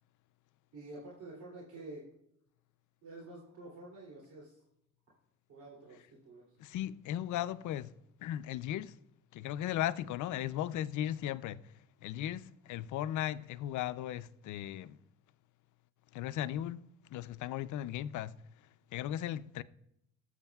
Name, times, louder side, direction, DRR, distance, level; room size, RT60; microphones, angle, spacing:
voice 1, 0.7-2.0 3.0-4.6 5.5-6.4, right 2 dB, 75° right, 2.9 m, -49 dB
voice 2, 6.6-7.9 8.2-9.0 9.3-11.6 12.0-15.0 16.1-16.8 17.1-18.4 18.9-19.6, left 12 dB, 75° left, 0.5 m, -36 dB
17.5 x 7.9 x 2.3 m
cardioid pair, 90°, 30 cm